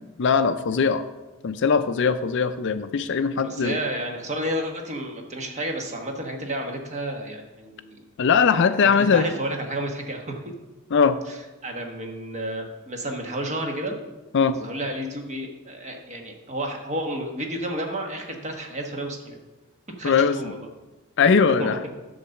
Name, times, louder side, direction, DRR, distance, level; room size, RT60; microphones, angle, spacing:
voice 1, 0.2-1.0 1.4-3.8 8.2-9.3 10.9-11.2 14.3-14.6 20.0-20.5 21.2-21.8, left 5 dB, 55° left, 11 dB, 0.5 m, -20 dB
voice 2, 3.4-8.0 9.1-10.4 11.3-11.4 11.6-14.0 14.5-19.4 20.0-20.7 21.6-21.8, right 1 dB, 35° right, 3 dB, 1.3 m, -31 dB
10.0 x 4.0 x 6.9 m, 1.1 s
head